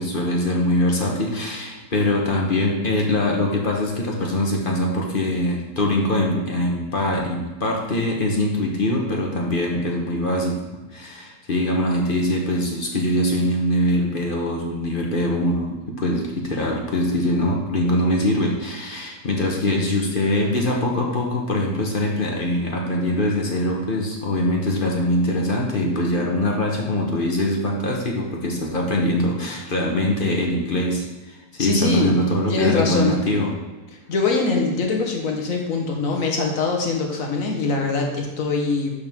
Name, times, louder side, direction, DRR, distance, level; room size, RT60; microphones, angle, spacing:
voice 1, 0.0-10.6 10.9-33.6, left 1 dB, 35° left, -1 dB, 1.1 m, -23 dB
voice 2, 31.6-32.1 32.5-33.2 34.1-38.9, left 3 dB, 55° left, 1 dB, 1.5 m, -22 dB
12.0 x 4.5 x 3.6 m, 1.2 s
omnidirectional pair, 1.8 m